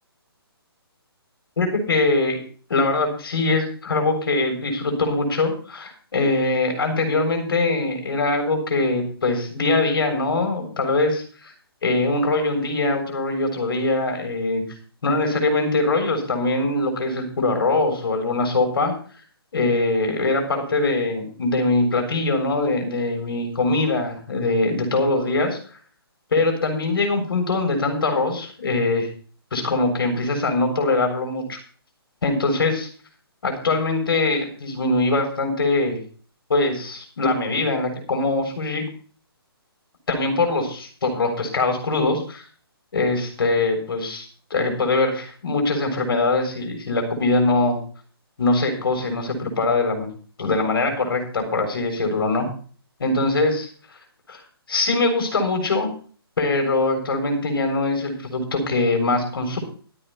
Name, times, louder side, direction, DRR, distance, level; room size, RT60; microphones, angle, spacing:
voice 1, 1.6-2.4 2.7-11.5 11.8-14.6 15.0-18.9 19.5-25.8 26.3-29.1 29.5-31.6 32.2-32.9 33.4-36.0 36.5-38.8 40.1-42.4 42.9-47.8 48.4-50.1 50.4-52.5 53.0-53.7 54.3-54.4 54.7-55.9 56.4-59.6, left 2 dB, 60° left, 3 dB, 7.3 m, -22 dB
14.0 x 9.9 x 5.8 m, 0.41 s
figure-of-eight pair, 140°, 13 cm